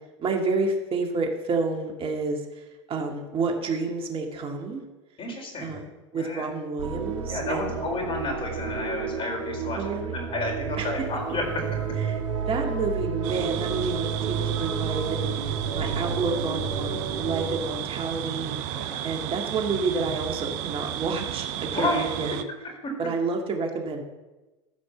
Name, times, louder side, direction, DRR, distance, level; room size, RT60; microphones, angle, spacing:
voice 1, 0.2-4.8 5.6-7.8 9.7-10.1 10.8-10.9 12.0-15.3 15.7-18.6 19.0-22.5 23.0-24.0, right 4 dB, 35° right, 2 dB, 2.2 m, -29 dB
voice 2, 5.2-5.8 6.1-6.4 7.3-9.8 10.1-11.7 15.7-15.9 18.7-19.1 21.7-22.0 22.8-22.9, left 2 dB, 35° left, 1 dB, 4.5 m, -31 dB
sound 1, 6.8-17.6, right 6 dB, 75° right, 1.8 m, -31 dB
sound 2, 13.2-22.4, right 11 dB, 60° right, 0.8 m, -33 dB
14.0 x 5.2 x 6.9 m, 1.1 s
hypercardioid pair, 85°, 16 cm